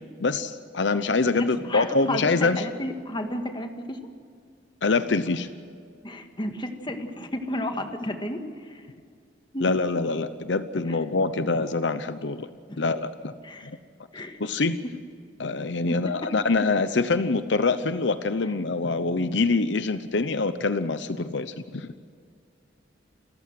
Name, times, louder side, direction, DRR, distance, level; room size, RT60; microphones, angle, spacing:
voice 1, 0.2-2.6 4.8-5.5 9.6-12.5 12.8-13.3 13.6-13.8 14.4-14.8 15.4-22.0, left 3 dB, 75° left, 12 dB, 0.8 m, -25 dB
voice 2, 1.3-4.0 6.0-8.9 9.5-9.7 10.9-11.0 12.7-12.8 13.4-13.7 14.1-14.4 15.9-16.3, left 1 dB, 25° left, 6 dB, 1.8 m, -33 dB
29.0 x 14.5 x 7.7 m, 2.2 s
head